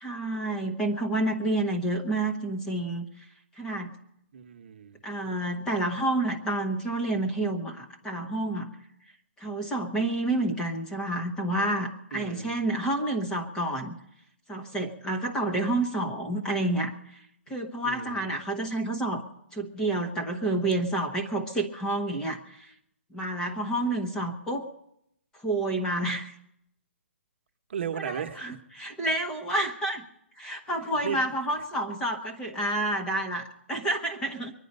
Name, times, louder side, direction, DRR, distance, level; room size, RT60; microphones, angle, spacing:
voice 1, 0.0-3.1 3.6-3.9 5.0-8.7 9.4-14.0 14.5-16.9 17.5-19.2 19.5-22.7 23.1-24.7 25.4-26.3 28.0-30.0 30.4-34.5, right 1 dB, 10° left, 3 dB, 0.9 m, -29 dB
voice 2, 4.3-5.0 12.1-12.6 17.8-18.3 27.7-28.4 31.0-31.2, right 8 dB, 50° right, 5 dB, 1.0 m, -35 dB
23.0 x 10.0 x 5.4 m, 0.78 s
hypercardioid pair, 165°, 8 cm